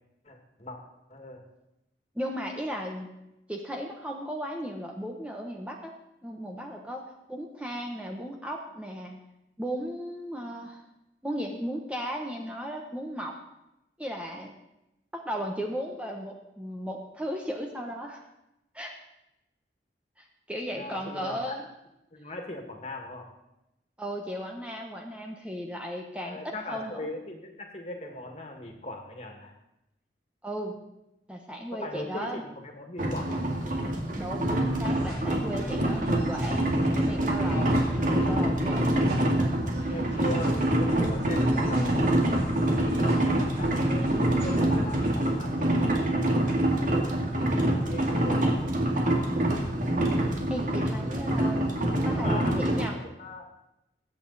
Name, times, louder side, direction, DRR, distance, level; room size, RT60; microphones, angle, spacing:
voice 1, 0.2-0.8 1.1-1.4 20.7-21.6 22.1-23.3 26.2-29.5 31.7-33.5 39.9-42.1 42.8-47.1 47.7-48.8 52.1-53.5, left 1 dB, 35° left, 3 dB, 2.1 m, -39 dB
voice 2, 2.1-3.1 3.5-5.9 6.2-9.2 9.6-10.8 11.2-13.4 14.0-14.5 15.1-18.2 18.7-18.9 20.2-21.6 24.0-27.1 30.4-30.8 31.3-32.4 34.2-38.9 50.0-51.7 52.0-53.0, equal, 5° right, 1 dB, 1.1 m, -36 dB
sound 1, 33.0-52.8, right 1 dB, 45° right, 2.2 m, -26 dB
sound 2, 34.4-45.3, equal, 65° right, 6.1 m, -42 dB
21.0 x 8.6 x 4.2 m, 0.90 s
head